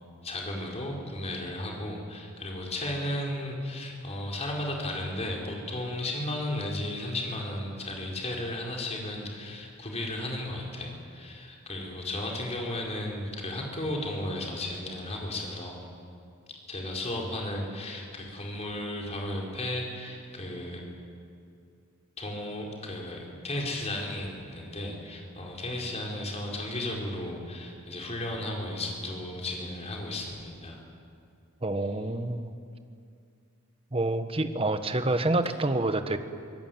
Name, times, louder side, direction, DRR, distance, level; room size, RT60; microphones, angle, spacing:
voice 1, 0.2-15.8 16.7-20.8 22.2-30.8, left 1 dB, 30° left, 0 dB, 4.7 m, -34 dB
voice 2, 31.6-32.5 33.9-36.2, right 2 dB, 25° right, 9 dB, 1.3 m, -27 dB
25.0 x 19.0 x 9.4 m, 2.4 s
head